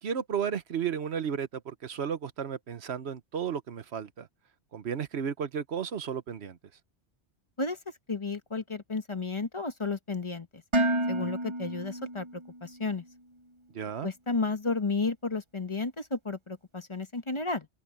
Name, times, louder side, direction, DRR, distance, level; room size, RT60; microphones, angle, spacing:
voice 1, 0.0-4.3 4.7-6.6 13.7-14.1, right 7 dB, 65° right, 1.2 m, -33 dB
voice 2, 8.1-10.6 11.1-13.0 14.0-17.7, left 3 dB, 25° left, 1.1 m, -32 dB
Dishes pots and pans, 10.7-12.8, right 1 dB, 30° right, 0.8 m, -30 dB
open air
omnidirectional pair, 1.2 m